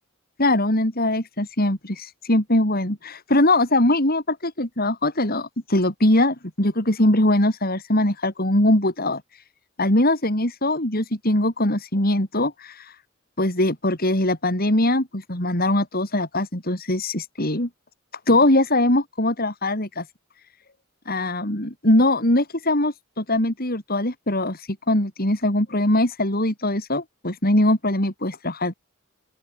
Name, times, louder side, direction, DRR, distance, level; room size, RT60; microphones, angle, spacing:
voice 1, 0.4-9.2 9.8-12.9 13.4-17.7 18.3-20.0 21.0-28.7, left 1 dB, 45° left, 5.3 m, -21 dB
open air
head